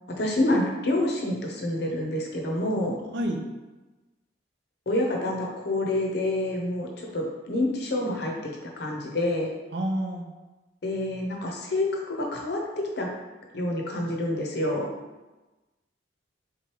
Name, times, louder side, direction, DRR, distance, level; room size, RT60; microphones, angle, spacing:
voice 1, 0.2-3.0 4.9-8.3 8.8-9.5 10.8-13.1 13.5-14.9, left 1 dB, 60° left, 0 dB, 0.7 m, -27 dB
voice 2, 9.7-10.3, right 1 dB, 65° right, 2 dB, 0.5 m, -28 dB
3.7 x 3.2 x 2.9 m, 1.1 s
head